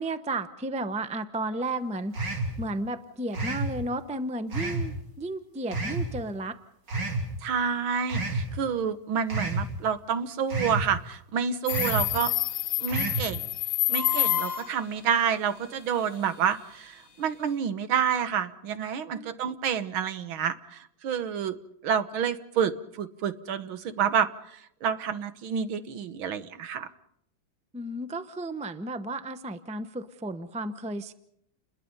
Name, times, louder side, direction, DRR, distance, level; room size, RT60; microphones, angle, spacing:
voice 1, 0.0-6.6 12.1-12.2 19.1-19.4 27.7-31.1, right 2 dB, 10° right, 10 dB, 0.4 m, -33 dB
sound 1, 2.1-2.6 3.3-3.7 4.5-4.9 5.7-6.1 6.9-7.3 8.1-8.5 9.3-9.7 10.5-10.9 11.7-12.1 12.9-13.3, right 2 dB, 60° right, 3.6 m, -29 dB
voice 2, 7.4-12.3 12.8-13.5 13.9-21.6 21.8-26.9, right 7 dB, 85° right, 11 dB, 2.0 m, -29 dB
Subway metro underground, 11.7-14.8, left 14 dB, 45° left, 1.8 m, -28 dB
29.5 x 21.5 x 5.5 m, 0.73 s
omnidirectional pair, 2.2 m